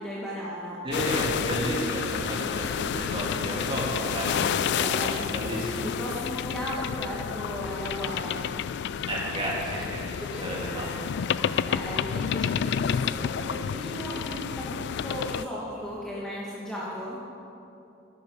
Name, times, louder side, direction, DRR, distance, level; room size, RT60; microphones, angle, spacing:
voice 1, 0.0-0.8 4.7-5.1 5.8-8.4 10.1-10.5 11.4-17.2, equal, 5° left, -7 dB, 1.6 m, -36 dB
voice 2, 0.8-5.8 9.1-11.0, right 1 dB, 30° right, -5 dB, 3.1 m, -32 dB
sound 1, 0.9-15.4, left 8 dB, 60° left, 0.3 m, -30 dB
12.0 x 10.5 x 5.3 m, 2.8 s
head